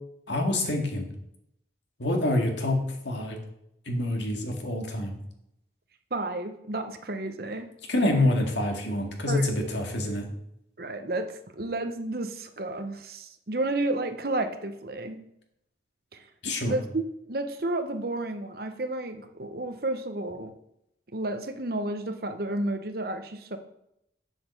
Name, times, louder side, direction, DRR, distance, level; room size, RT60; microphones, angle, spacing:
voice 1, 0.3-1.1 2.0-3.4 3.9-5.2 7.9-10.3 16.4-16.8, left 1 dB, 75° left, 2 dB, 2.0 m, -26 dB
voice 2, 6.1-7.6 9.3-9.5 10.8-15.2 16.7-17.0 17.3-20.5 21.1-23.6, right 2 dB, 55° right, 8 dB, 0.9 m, -31 dB
7.7 x 7.6 x 6.8 m, 0.80 s
head